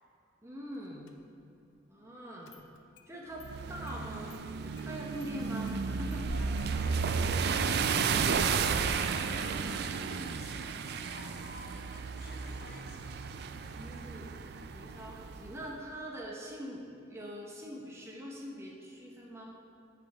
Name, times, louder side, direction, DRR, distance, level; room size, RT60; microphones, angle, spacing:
voice 1, 0.4-1.1 1.9-2.6 3.1-6.4 9.6-9.7 13.7-14.3 14.7-19.6, equal, 15° right, -3 dB, 0.8 m, -43 dB
Engine starting, 1.1-1.2 2.5-3.1 3.4-3.5 3.9-4.0 4.3-4.4 4.8-5.3 5.6-9.6, left 2 dB, 65° left, 0.6 m, -47 dB
sound 1, 3.4-15.5, right 5 dB, 55° right, 0.3 m, -33 dB
voice 2, 6.7-8.8 9.3-13.1 13.6-14.1, left 2 dB, 50° left, 0 dB, 1.0 m, -53 dB
9.4 x 5.0 x 4.6 m, 2.5 s
head